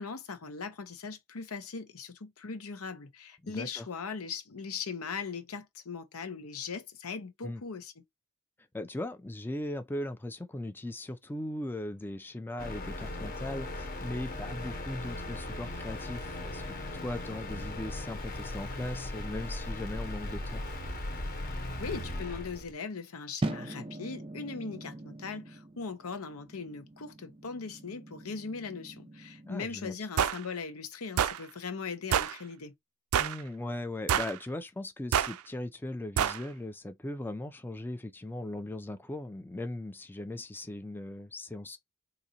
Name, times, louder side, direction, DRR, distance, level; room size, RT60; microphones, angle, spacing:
voice 1, 0.0-7.9 21.8-32.7, left 5 dB, 90° left, 0.8 m, -39 dB
voice 2, 3.4-3.9 7.4-7.6 8.7-20.6 29.4-29.9 33.2-41.8, left 1 dB, 10° left, 0.4 m, -38 dB
sound 1, 12.6-22.7, left 1 dB, 45° left, 0.9 m, -38 dB
sound 2, 23.4-29.6, right 2 dB, 25° right, 0.6 m, -41 dB
sound 3, 30.2-30.4 31.2-31.4 32.1-32.3 33.1-33.4 34.1-34.4 35.1-35.3 36.2-36.4, right 9 dB, 90° right, 0.4 m, -27 dB
3.9 x 2.6 x 2.8 m
head